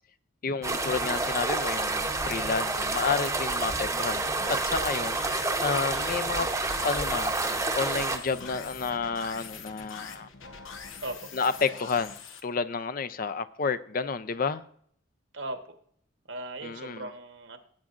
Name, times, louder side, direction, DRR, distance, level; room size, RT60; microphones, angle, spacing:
voice 1, 0.4-6.5 6.8-10.3 11.3-12.2 12.4-14.6 16.6-17.1, left 5 dB, 45° left, 0.5 m, -30 dB
sound 1, 0.6-8.2, right 3 dB, 15° right, 0.8 m, -29 dB
sound 2, 4.4-12.4, left 5 dB, 85° left, 1.1 m, -44 dB
voice 2, 16.3-17.6, right 2 dB, 70° right, 1.3 m, -37 dB
16.5 x 8.5 x 2.5 m
head